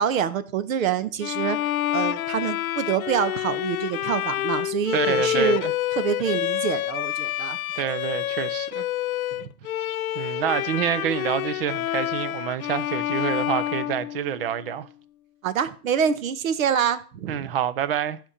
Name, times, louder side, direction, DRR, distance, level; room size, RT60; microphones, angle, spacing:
voice 1, 0.0-1.6 1.9-5.6 6.0-7.6 9.4-9.5 15.4-17.4, right 8 dB, 55° right, 1.2 m, -26 dB
Bowed string instrument, 1.2-14.7, left 13 dB, 65° left, 0.5 m, -28 dB
voice 2, 4.9-5.7 7.8-8.9 10.1-14.9 17.3-18.2, right 9 dB, 40° right, 0.7 m, -27 dB
15.0 x 5.9 x 4.3 m
hypercardioid pair, 150°, 47 cm